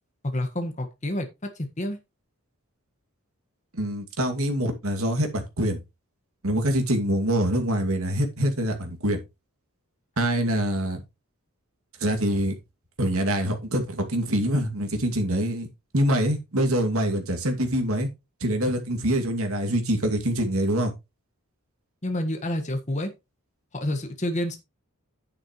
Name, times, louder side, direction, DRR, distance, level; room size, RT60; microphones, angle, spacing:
voice 1, 0.2-2.0 22.0-23.1 23.7-24.6, left 1 dB, 30° left, 1.4 m, -29 dB
voice 2, 3.7-5.8 6.4-9.2 10.2-11.0 12.0-12.5 13.0-15.7 15.9-18.1 18.4-20.9, equal, 75° right, 2.3 m, -25 dB
10.0 x 8.5 x 3.1 m
head